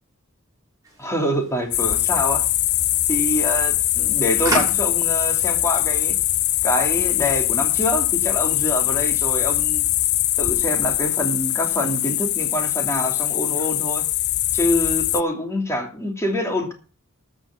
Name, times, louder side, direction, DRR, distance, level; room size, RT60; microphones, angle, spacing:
sound 1, 0.8-7.4, right 1 dB, 15° right, 6.3 m, -35 dB
voice 1, 1.0-2.4 3.1-6.1 6.6-9.9 10.4-14.1 14.5-16.7, equal, 15° left, 3 dB, 2.8 m, -25 dB
sound 2, 1.7-15.2, left 15 dB, 50° left, 0.5 m, -22 dB
13.5 x 6.4 x 7.1 m, 0.38 s
head